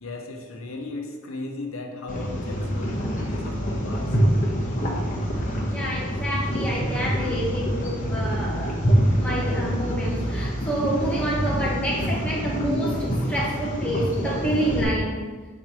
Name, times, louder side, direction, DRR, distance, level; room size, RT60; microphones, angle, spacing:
voice 1, 0.0-4.2, left 2 dB, 80° left, 3 dB, 0.7 m, -36 dB
sound 1, 2.1-14.8, equal, 35° left, 1.1 m, -26 dB
voice 2, 5.7-8.8 9.1-15.3, right 1 dB, 5° left, -4 dB, 1.0 m, -28 dB
5.9 x 4.2 x 4.6 m, 1.4 s
head